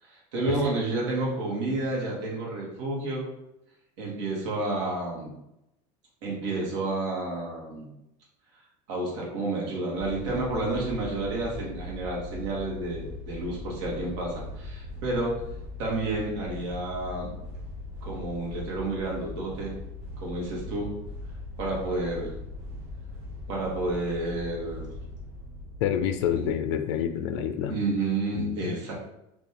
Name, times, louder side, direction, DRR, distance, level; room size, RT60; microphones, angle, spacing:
voice 1, 0.0-3.3 4.0-5.3 6.2-7.9 8.9-15.4 15.8-17.3 18.0-19.8 20.2-20.9 21.6-22.3 23.5-24.9 26.3-26.5 27.7-28.9, right 2 dB, 85° right, -3 dB, 1.3 m, -30 dB
sound 1, 10.0-26.5, left 1 dB, 65° right, 0.7 m, -40 dB
voice 2, 25.8-27.8 28.3-28.7, left 9 dB, 80° left, 8 dB, 0.4 m, -28 dB
3.4 x 2.6 x 2.8 m, 0.85 s
cardioid pair, 170°, 15 cm